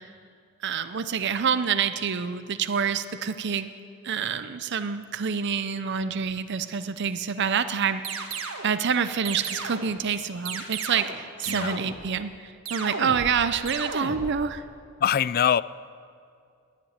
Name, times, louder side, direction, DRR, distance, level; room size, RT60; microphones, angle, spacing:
voice 1, 0.6-3.7 4.0-14.6, right 6 dB, 55° right, 11 dB, 0.6 m, -27 dB
sound 1, 8.0-8.7 9.2-10.0 10.4-11.2 11.4-12.1 12.6-13.4 13.6-14.3, right 4 dB, 75° right, 1.6 m, -34 dB
voice 2, 11.5-11.8 15.0-15.6, left 9 dB, 45° left, 19 dB, 0.3 m, -23 dB
20.5 x 7.5 x 9.5 m, 2.3 s
head